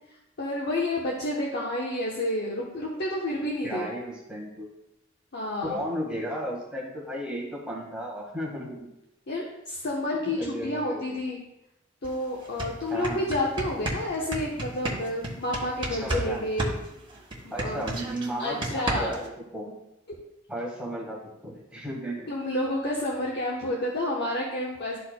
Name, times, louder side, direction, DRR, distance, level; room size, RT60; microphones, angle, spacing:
voice 1, 0.4-3.9 5.3-5.8 9.3-11.4 12.0-16.8 17.4-18.0 18.4-19.1 22.3-25.0, left 1 dB, 60° left, -4 dB, 0.9 m, -30 dB
voice 2, 3.6-4.7 5.6-8.9 10.2-11.0 12.9-13.2 16.0-16.5 17.5-19.7 20.5-22.3, equal, 5° right, -5 dB, 1.6 m, -34 dB
sound 1, 12.0-12.1 12.4-16.3 16.6-19.3, right 1 dB, 25° right, 1.4 m, -31 dB
12.0 x 4.2 x 2.2 m, 0.87 s
head